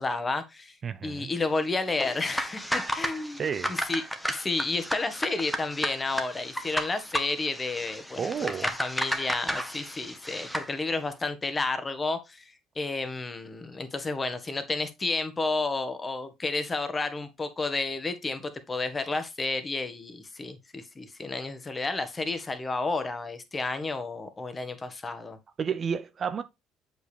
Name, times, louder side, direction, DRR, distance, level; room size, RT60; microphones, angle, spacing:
voice 1, 0.0-0.8 1.0-3.4 3.7-4.0 4.3-8.5 8.8-25.4, left 3 dB, 25° left, 1.4 m, -31 dB
voice 2, 0.8-1.3 3.4-3.7 8.2-8.7 25.6-26.4, right 6 dB, 40° right, 0.7 m, -31 dB
sound 1, 1.9-10.7, equal, ahead, 1.3 m, -33 dB
8.0 x 4.9 x 3.4 m
hypercardioid pair, 60°, 0 cm